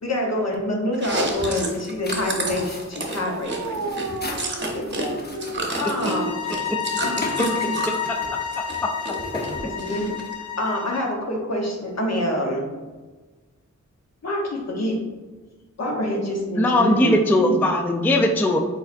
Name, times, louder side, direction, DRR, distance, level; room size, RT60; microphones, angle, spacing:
voice 1, 0.0-3.8 4.6-5.1 5.8-6.3 7.0-7.8 9.6-10.1 10.6-12.7 14.2-15.0 15.8-17.7, left 1 dB, 60° left, -1 dB, 1.0 m, -26 dB
Chewing mastication, 0.9-5.1 5.3-8.0 8.4-9.2 9.4-10.3, right 2 dB, 35° right, 0.8 m, -30 dB
sound 1, 1.3-10.3, left 1 dB, 35° left, 0.8 m, -38 dB
voice 2, 3.5-6.3, right 2 dB, 65° right, 6 dB, 0.5 m, -33 dB
sound 2, 6.0-11.1, left 7 dB, 75° left, 0.6 m, -30 dB
voice 3, 16.6-18.6, left 1 dB, 5° left, 2 dB, 0.3 m, -19 dB
4.7 x 4.2 x 2.6 m, 1.3 s
wide cardioid pair, 105°, 30 cm